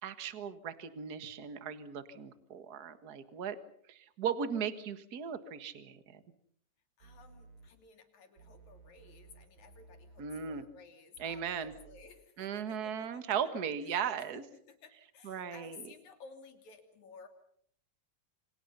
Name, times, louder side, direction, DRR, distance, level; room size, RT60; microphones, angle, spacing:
voice 1, 0.0-3.6 3.9-6.2 10.2-10.6 11.2-11.7 12.4-14.4 15.2-15.8, right 7 dB, 40° right, 11 dB, 1.5 m, -37 dB
voice 2, 7.0-13.2 13.9-17.3, left 5 dB, 60° left, 6 dB, 4.2 m, -56 dB
sound 1, 7.0-7.7 8.4-10.6 11.2-12.0, right 4 dB, 85° right, 5.4 m, -57 dB
28.5 x 25.5 x 5.6 m, 0.64 s
omnidirectional pair, 3.9 m